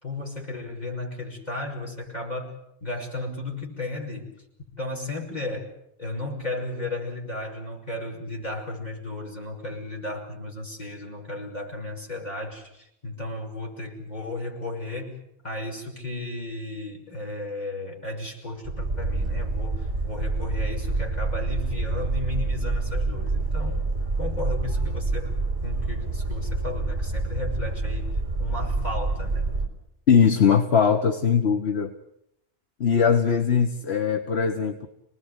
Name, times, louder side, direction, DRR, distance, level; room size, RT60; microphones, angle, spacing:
voice 1, 0.0-4.3 4.7-5.7 6.0-15.2 15.4-23.8 24.2-25.3 25.6-28.1 28.4-29.5, left 2 dB, 40° left, 1 dB, 6.0 m, -34 dB
Boat Water vehicle, 18.6-29.7, right 3 dB, 55° right, 4.2 m, -27 dB
voice 2, 30.1-31.9 32.8-34.9, left 6 dB, 70° left, 6 dB, 1.6 m, -20 dB
29.0 x 19.5 x 8.2 m, 0.79 s
omnidirectional pair, 1.2 m